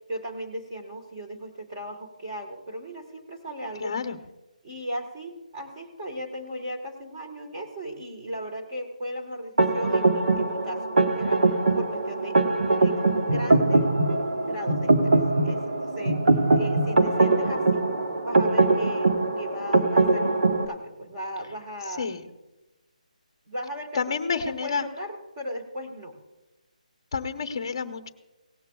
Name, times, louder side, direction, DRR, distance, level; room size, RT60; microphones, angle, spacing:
voice 1, 0.1-3.9 4.6-13.9 14.4-15.2 15.4-17.9 18.2-22.1 23.5-26.2, equal, 15° right, 1 dB, 1.4 m, -37 dB
voice 2, 3.8-4.2 22.0-22.3 23.9-24.9 27.1-28.1, left 5 dB, 30° left, 8 dB, 0.8 m, -29 dB
sound 1, 9.6-20.6, right 2 dB, 65° right, 1.2 m, -22 dB
18.0 x 13.5 x 2.3 m, 1.0 s
hypercardioid pair, 180°, 4 cm